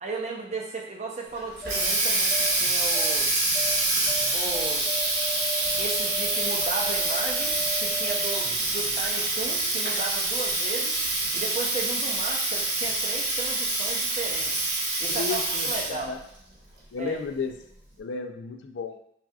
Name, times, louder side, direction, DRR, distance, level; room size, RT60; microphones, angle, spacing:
voice 1, 0.0-3.5 4.3-5.0 5.8-11.0 11.3-14.5 15.0-16.2 17.0-17.2, right 3 dB, 40° right, 0 dB, 0.6 m, -35 dB
sound 1, 1.3-9.5 9.8-9.9, equal, 50° left, 1.3 m, -38 dB
Water tap faucet, 1.4-16.1, right 2 dB, 60° right, 1.2 m, -26 dB
voice 2, 15.1-16.2 16.9-17.6 18.0-19.0, left 4 dB, 85° left, 6 dB, 0.4 m, -33 dB
6.0 x 2.8 x 2.3 m, 0.73 s
head